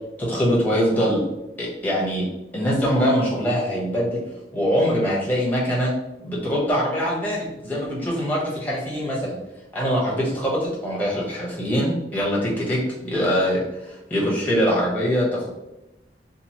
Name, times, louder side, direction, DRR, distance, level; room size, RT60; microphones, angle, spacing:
voice 1, 0.2-1.2 1.6-2.2 2.5-4.2 4.5-5.9 6.2-9.4 9.7-15.5, equal, 10° left, -5 dB, 0.8 m, -23 dB
2.9 x 2.4 x 2.8 m, 0.96 s
head